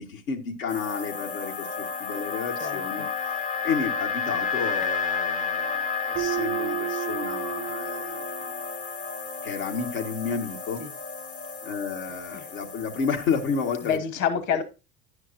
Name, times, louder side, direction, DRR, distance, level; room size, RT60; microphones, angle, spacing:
voice 1, 0.0-8.3 9.4-10.8 11.6-14.0, left 6 dB, 75° left, 1.8 m, -31 dB
sound 1, 0.7-14.0, left 5 dB, 20° left, 0.6 m, -32 dB
voice 2, 2.6-3.1 10.8-10.9 12.3-12.5 13.8-14.6, left 7 dB, 45° left, 1.4 m, -28 dB
Keyboard (musical), 6.1-8.9, right 17 dB, 45° right, 0.7 m, -33 dB
10.5 x 8.0 x 2.7 m
hypercardioid pair, 80°, 41 cm